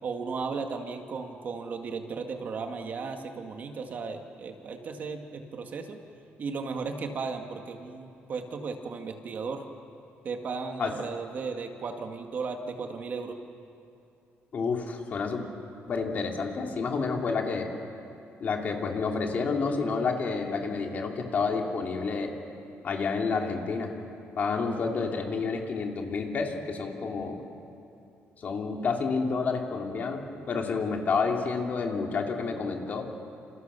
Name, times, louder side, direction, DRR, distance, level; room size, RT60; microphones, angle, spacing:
voice 1, 0.0-6.0 6.4-9.6 10.2-13.4, right 4 dB, 40° right, 4 dB, 1.9 m, -35 dB
voice 2, 14.5-15.4 15.9-17.7 18.4-22.3 22.8-23.9 24.4-27.4 28.4-30.2 30.5-33.0, left 4 dB, 40° left, 2 dB, 2.9 m, -29 dB
29.0 x 27.5 x 6.9 m, 2.6 s
cardioid pair, 170°, 4 cm